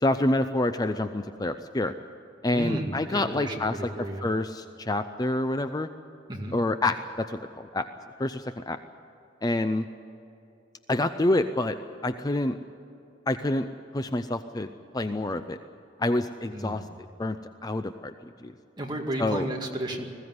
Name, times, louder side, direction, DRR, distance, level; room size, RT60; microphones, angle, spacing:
voice 1, 0.0-1.9 2.4-3.7 4.2-5.9 6.5-7.9 8.2-8.8 9.4-9.9 10.9-11.8 12.0-12.6 13.3-13.7 13.9-15.6 16.0-16.8 17.2-17.4 17.6-18.1 18.4-18.5 19.2-19.5, left 2 dB, 20° left, 9 dB, 0.5 m, -27 dB
voice 2, 2.5-4.3 6.3-6.6 16.5-16.9 18.8-20.1, right 1 dB, 25° right, 0 dB, 2.2 m, -33 dB
20.5 x 15.5 x 9.6 m, 2.7 s
head